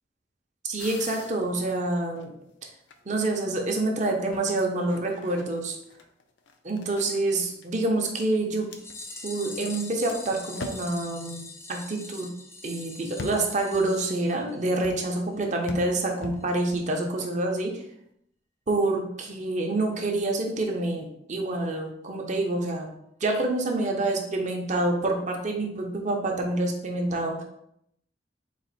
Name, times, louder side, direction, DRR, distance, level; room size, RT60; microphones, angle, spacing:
voice 1, 0.6-2.3 3.1-5.8 6.6-8.7 9.2-12.3 12.6-17.7 18.7-22.9 23.2-27.4, right 2 dB, 40° right, 2 dB, 0.6 m, -27 dB
sound 1, 0.8-2.5 2.9-3.6 4.3-9.8 10.1-10.2 10.5-11.1 13.2-13.8 14.8-15.1 15.7-16.8, left 4 dB, 85° left, 0.5 m, -42 dB
sound 2, 8.7-14.9 15.2-15.3 15.5-15.6 16.0-16.1 16.4-16.5, left 3 dB, 15° left, 0.5 m, -43 dB
4.0 x 2.5 x 4.0 m, 0.76 s
head